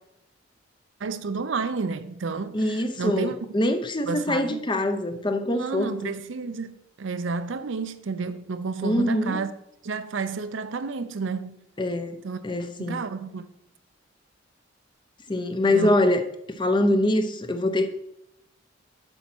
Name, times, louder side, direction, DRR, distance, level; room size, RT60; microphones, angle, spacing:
voice 1, 1.0-3.4 4.0-4.6 5.5-9.5 9.8-11.6 12.2-12.4 12.8-13.5 15.7-15.9, right 4 dB, 70° right, 0.5 m, -31 dB
voice 2, 2.5-5.9 8.8-9.4 11.8-12.2 12.4-13.0 15.3-16.2 16.6-17.9, left 1 dB, 25° left, 0.6 m, -24 dB
8.0 x 4.2 x 6.1 m
head